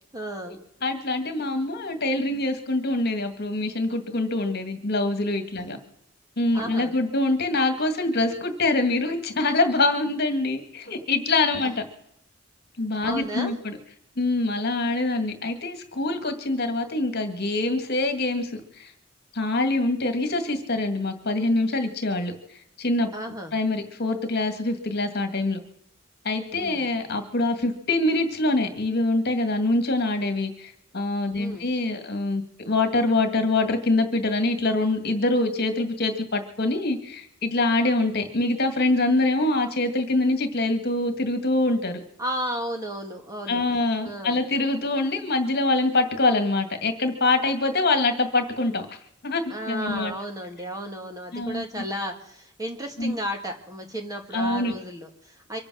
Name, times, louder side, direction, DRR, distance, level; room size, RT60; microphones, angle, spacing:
voice 1, 0.1-0.6 5.6-5.8 6.5-6.9 11.6-11.7 13.0-13.5 23.1-23.5 26.5-26.9 31.4-31.7 42.2-43.7 44.0-44.4 49.5-55.6, equal, 15° right, 3 dB, 2.0 m, -33 dB
voice 2, 0.8-5.8 6.4-11.8 12.8-13.8 14.2-18.9 19.3-22.3 22.8-23.1 23.5-25.6 26.2-42.0 43.5-48.9 49.2-50.1 51.3-51.6 53.0-53.1 54.3-54.7, left 2 dB, 50° left, 6 dB, 2.1 m, -24 dB
24.5 x 8.8 x 6.3 m, 0.72 s
head